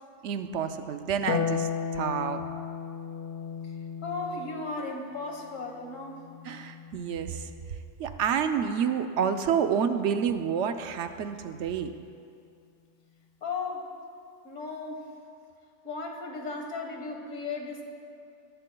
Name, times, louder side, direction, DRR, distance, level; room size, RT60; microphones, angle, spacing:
voice 1, 0.2-2.4 6.4-7.5 8.0-11.9, right 7 dB, 70° right, 8 dB, 0.9 m, -29 dB
Harp, 1.3-7.8 9.4-10.4, left 7 dB, 60° left, 0.6 m, -36 dB
voice 2, 4.0-6.3 13.4-13.9 14.4-15.1 15.8-17.8, left 3 dB, 85° left, 2 dB, 1.7 m, -36 dB
20.5 x 11.5 x 2.2 m, 2.5 s
omnidirectional pair, 1.3 m